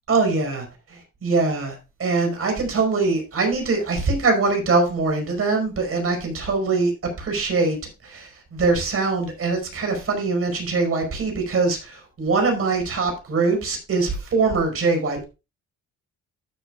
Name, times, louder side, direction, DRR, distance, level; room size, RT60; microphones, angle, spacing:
voice 1, 0.1-6.9 7.2-15.2, right 3 dB, 50° right, 3 dB, 4.9 m, -23 dB
12.5 x 7.8 x 2.4 m, 0.29 s
cardioid pair, 90°, 30 cm